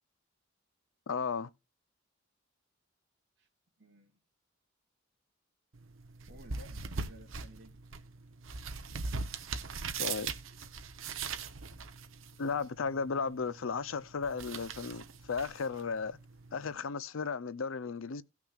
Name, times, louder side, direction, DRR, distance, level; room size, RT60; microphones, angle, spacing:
voice 1, 1.1-1.5 10.0-10.3 12.4-16.2 16.5-18.2, left 5 dB, 90° left, 0.6 m, -35 dB
voice 2, 3.8-4.2 6.3-7.8, right 1 dB, 60° right, 2.8 m, -56 dB
sound 1, 5.7-16.7, right 5 dB, 90° right, 0.9 m, -41 dB
17.5 x 5.9 x 2.4 m
head